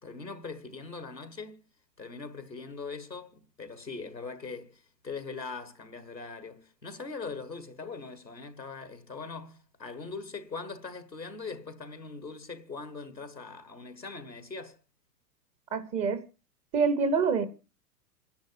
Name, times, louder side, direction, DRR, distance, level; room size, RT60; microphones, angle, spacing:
voice 1, 0.0-1.6 2.0-14.8, left 4 dB, 90° left, 1.7 m, -41 dB
voice 2, 15.7-16.2 16.7-17.5, right 5 dB, 15° right, 0.5 m, -26 dB
27.5 x 10.5 x 2.7 m
figure-of-eight pair, 100°, 49 cm